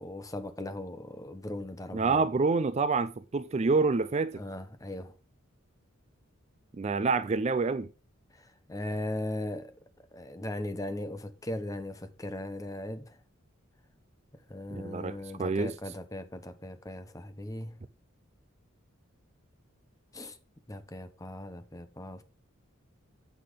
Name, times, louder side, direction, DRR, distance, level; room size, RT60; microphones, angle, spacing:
voice 1, 0.0-2.3 4.3-5.1 8.3-9.7 10.1-13.2 14.3-17.8 20.1-20.4 20.7-22.2, left 1 dB, 15° left, 0.9 m, -38 dB
voice 2, 1.9-4.4 6.8-7.9 14.7-15.7, right 4 dB, 30° right, 0.4 m, -27 dB
8.6 x 5.8 x 4.8 m
head